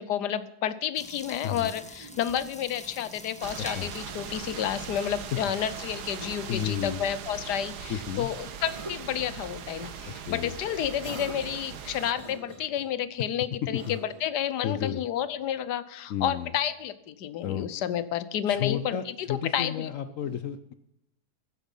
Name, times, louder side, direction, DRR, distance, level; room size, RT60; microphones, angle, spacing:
voice 1, 0.0-19.9 20.3-20.4, left 10 dB, 85° left, 15 dB, 1.4 m, -31 dB
sound 1, 0.9-6.9, left 1 dB, 5° left, 1.0 m, -47 dB
Cough, 1.5-2.3 3.7-4.8 6.0-6.6 7.4-8.2 8.6-9.3 9.8-10.0 11.0-11.7 12.1-12.9 13.7-14.3, right 1 dB, 20° right, 1.4 m, -45 dB
sound 2, 3.4-12.1, right 7 dB, 80° right, 1.6 m, -40 dB
voice 2, 3.6-3.9 6.5-7.0 7.9-8.3 10.0-10.5 13.6-14.0 14.6-15.0 16.1-16.5 17.4-17.7 18.5-20.7, left 9 dB, 65° left, 11 dB, 0.9 m, -32 dB
15.5 x 10.0 x 5.5 m, 0.81 s
omnidirectional pair, 1.8 m